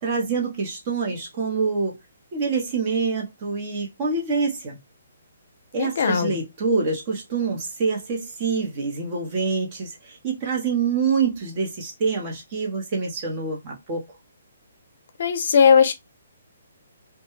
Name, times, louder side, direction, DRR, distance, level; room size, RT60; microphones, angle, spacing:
voice 1, 0.0-2.0 2.3-4.8 5.7-14.1, right 4 dB, 35° right, 0.9 m, -26 dB
voice 2, 5.8-6.4 15.2-15.9, left 6 dB, 60° left, 0.4 m, -18 dB
2.2 x 2.1 x 3.0 m
hypercardioid pair, 150°, 0 cm